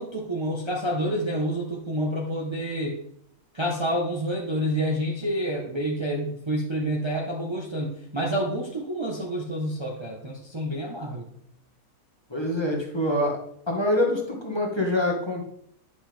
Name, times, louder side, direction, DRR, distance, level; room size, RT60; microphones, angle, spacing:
voice 1, 0.0-3.0 3.5-11.3, equal, 20° right, -2 dB, 0.9 m, -28 dB
voice 2, 12.3-13.4 13.7-15.5, left 1 dB, 20° left, -1 dB, 1.3 m, -25 dB
9.7 x 5.5 x 3.4 m, 0.70 s
omnidirectional pair, 1.6 m